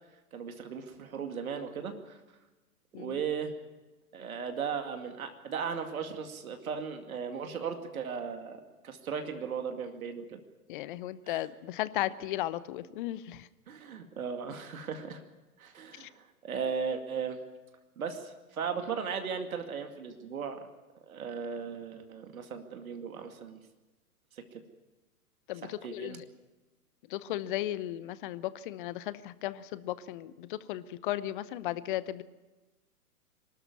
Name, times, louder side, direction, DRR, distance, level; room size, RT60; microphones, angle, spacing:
voice 1, 0.3-2.2 2.9-3.5 4.1-10.4 11.3-11.4 13.7-15.2 15.6-17.4 18.0-20.7 21.1-23.6 25.6-26.2, right 6 dB, 65° right, 6 dB, 2.3 m, -37 dB
voice 2, 10.7-13.5 15.9-16.1 25.5-26.2 27.1-32.2, left 14 dB, 35° left, 17 dB, 0.8 m, -35 dB
24.0 x 12.5 x 9.7 m, 1.2 s
figure-of-eight pair, 115°, 46 cm